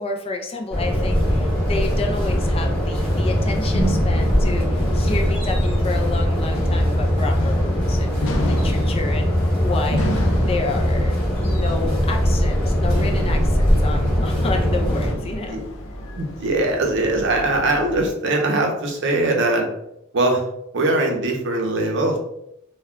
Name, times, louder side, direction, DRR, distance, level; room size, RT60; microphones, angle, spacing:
voice 1, 0.0-9.3 9.6-10.1 10.4-11.1 11.4-15.6, left 3 dB, 30° left, 2 dB, 0.4 m, -30 dB
sound 1, 0.7-15.1, equal, 5° left, 0.9 m, -21 dB
sound 2, 0.8-18.1, equal, 80° left, 0.5 m, -31 dB
voice 2, 16.2-19.7 20.1-20.4 20.7-22.2, right 2 dB, 60° right, 2 dB, 0.6 m, -21 dB
2.2 x 2.2 x 3.5 m, 0.79 s
head